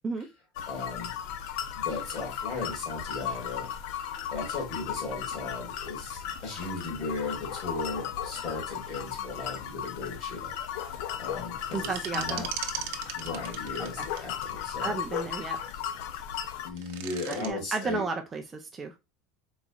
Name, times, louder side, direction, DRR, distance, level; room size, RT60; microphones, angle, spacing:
sound 1, 0.5-16.7, left 9 dB, 60° left, 0.5 m, -36 dB
voice 1, 0.7-1.1 1.7-12.5 13.1-15.0 16.6-18.1, left 3 dB, 40° left, 2.3 m, -37 dB
voice 2, 11.7-12.4 13.8-14.1 14.8-15.6 17.3-19.0, right 4 dB, 15° right, 0.4 m, -33 dB
sound 2, 11.7-14.5 16.6-17.5, right 11 dB, 70° right, 0.7 m, -37 dB
4.0 x 4.0 x 2.3 m
cardioid pair, 165°, 0 cm